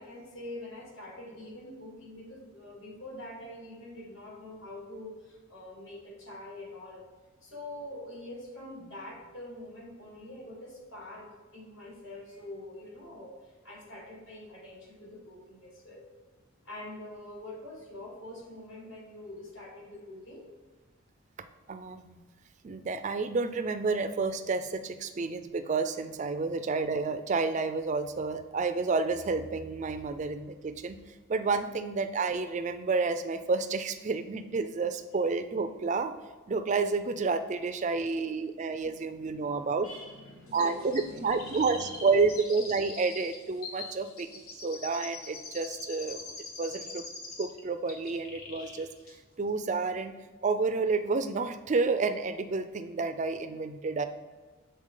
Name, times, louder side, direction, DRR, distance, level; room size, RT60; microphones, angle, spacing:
voice 1, 0.0-7.0 7.4-16.0 16.6-20.5 38.9-42.1 43.8-43.9, left 1 dB, 60° left, -3 dB, 1.7 m, -45 dB
voice 2, 21.7-22.2 22.6-31.0 31.3-36.1 36.5-39.9 40.5-44.3 44.6-47.0 47.4-48.9 49.4-50.1 50.4-54.1, right 4 dB, 35° right, 9 dB, 0.3 m, -30 dB
Chirp tweet, 40.5-47.6 47.9-48.8 49.1-49.2, left 3 dB, 85° left, 1.1 m, -43 dB
6.4 x 4.0 x 3.7 m, 1.3 s
head